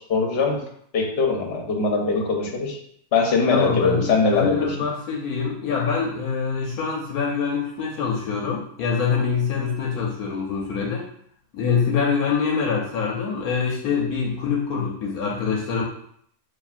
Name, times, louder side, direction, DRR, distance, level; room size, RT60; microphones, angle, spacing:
voice 1, 0.1-0.6 0.9-2.8 3.1-4.7, left 4 dB, 50° left, 0 dB, 0.9 m, -21 dB
voice 2, 3.5-11.1 11.5-15.8, left 6 dB, 70° left, -1 dB, 1.1 m, -25 dB
5.6 x 2.7 x 2.4 m, 0.67 s
omnidirectional pair, 1.7 m